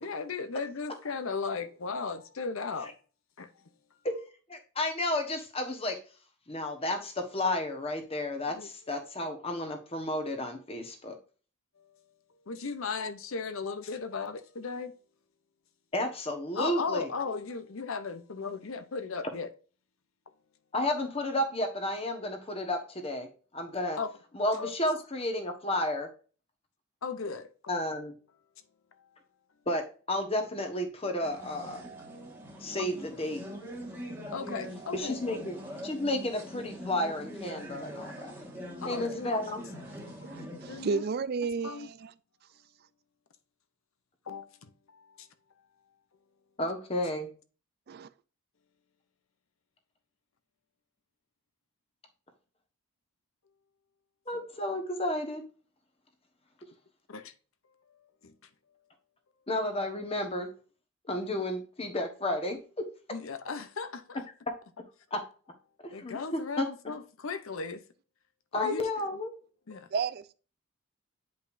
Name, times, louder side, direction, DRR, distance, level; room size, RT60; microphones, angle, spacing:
voice 1, 0.0-2.9 3.4-3.6 3.9-4.0 8.5-8.7 12.5-14.9 16.5-19.5 24.0-24.2 24.6-24.7 27.0-27.5 29.0-29.1 34.3-35.4 38.8-39.4 40.0-41.0 41.6-41.9 44.3-45.3 57.1-57.3 58.2-58.3 63.1-64.3 65.9-67.8 68.5-68.8 69.7-69.9, left 4 dB, 65° left, 0.7 m, -36 dB
voice 2, 4.5-6.0 6.5-11.1 15.9-17.1 20.7-23.3 23.5-24.0 24.3-26.1 27.7-28.1 29.7-31.8 32.6-33.4 34.9-35.6 35.8-38.3 38.8-39.6 46.6-47.3 54.3-55.4 59.5-60.5 61.1-62.8 65.1-65.2 65.8-66.7 68.5-69.3, left 1 dB, 25° left, 1.2 m, -32 dB
sound 1, 31.2-40.9, equal, 10° right, 1.5 m, -43 dB
voice 3, 40.2-42.1 47.9-48.1 69.9-70.3, right 5 dB, 45° right, 0.4 m, -32 dB
8.8 x 5.2 x 2.6 m
head